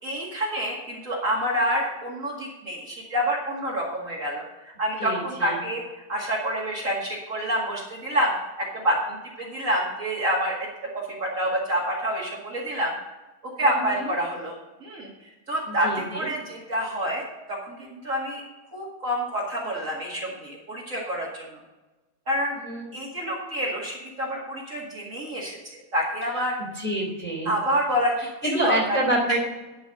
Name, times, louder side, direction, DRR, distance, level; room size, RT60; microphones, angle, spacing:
voice 1, 0.0-5.8 6.1-10.7 10.9-12.9 13.6-14.5 14.8-15.1 15.5-18.4 18.7-21.6 22.3-22.6 22.9-25.6 25.9-26.5 27.4-28.1 28.4-29.0, equal, 90° right, -4 dB, 0.7 m, -27 dB
voice 2, 5.0-5.6 13.6-14.1 15.7-16.3 22.6-22.9 26.6-27.5 28.4-29.4, right 1 dB, 5° left, -1 dB, 2.6 m, -27 dB
11.5 x 5.6 x 6.5 m, 1.1 s
omnidirectional pair, 4.8 m